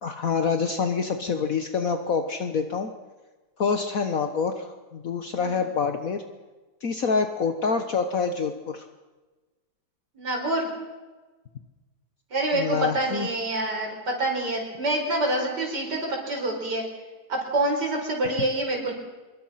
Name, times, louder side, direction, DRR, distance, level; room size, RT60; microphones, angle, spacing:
voice 1, 0.0-2.9 3.6-6.2 6.8-8.9 12.5-13.3, left 5 dB, 55° left, 7 dB, 1.6 m, -26 dB
voice 2, 10.2-10.7 12.3-16.8 17.3-18.9, right 2 dB, 85° right, 0 dB, 5.4 m, -26 dB
25.0 x 23.5 x 5.8 m, 1.2 s
omnidirectional pair, 1.8 m